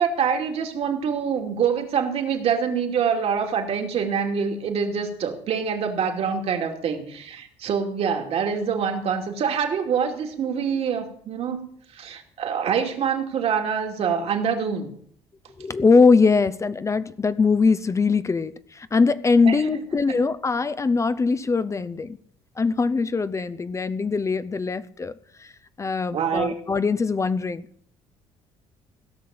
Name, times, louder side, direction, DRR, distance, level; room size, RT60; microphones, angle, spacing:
voice 1, 0.0-11.7 11.9-14.9 19.5-19.8 20.1-20.2 26.1-26.5, right 7 dB, 60° right, 2.6 m, -25 dB
voice 2, 15.6-22.2 22.6-25.1 25.4-25.5 25.8-27.7, left 4 dB, 25° left, 0.6 m, -21 dB
17.0 x 6.2 x 7.7 m
supercardioid pair, 80°, 12 cm